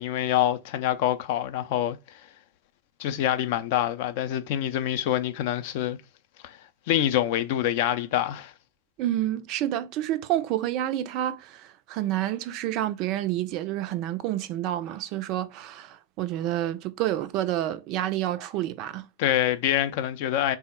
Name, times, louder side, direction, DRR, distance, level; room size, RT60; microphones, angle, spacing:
voice 1, 0.0-2.0 3.0-6.0 6.4-6.6 6.9-8.5 19.2-20.6, left 11 dB, 50° left, 0.4 m, -26 dB
voice 2, 9.0-11.6 11.9-19.0, right 13 dB, 40° right, 0.4 m, -29 dB
3.5 x 2.0 x 4.1 m
figure-of-eight pair, 90°, 0 cm